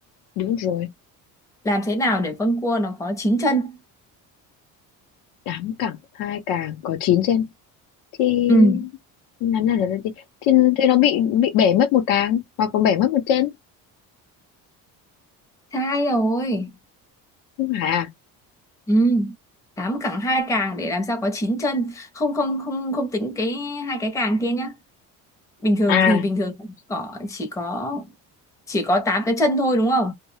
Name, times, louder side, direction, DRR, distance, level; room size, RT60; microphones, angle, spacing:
voice 1, 0.4-0.9 5.5-7.5 8.2-8.9 9.4-10.1 10.4-13.5 17.6-18.1 25.9-26.3, left 10 dB, 85° left, 0.8 m, -20 dB
voice 2, 1.6-3.8 8.5-8.8 15.7-16.8 18.9-19.3 19.8-24.7 25.6-26.5 26.9-28.1 28.7-30.1, equal, 10° left, 0.5 m, -22 dB
2.2 x 2.2 x 3.2 m
cardioid pair, 170°, 34 cm